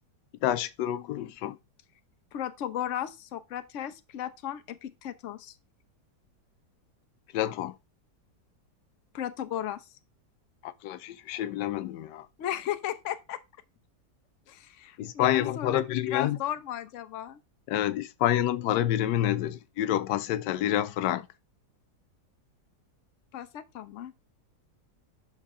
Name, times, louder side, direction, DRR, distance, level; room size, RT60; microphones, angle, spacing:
voice 1, 0.4-1.6 7.3-7.8 10.6-12.3 15.0-16.4 17.7-21.3, left 12 dB, 90° left, 1.2 m, -28 dB
voice 2, 2.3-5.5 9.1-9.9 12.4-13.4 14.5-15.8 16.1-17.4 23.3-24.1, left 11 dB, 55° left, 1.0 m, -35 dB
7.5 x 5.8 x 3.7 m
omnidirectional pair, 1.8 m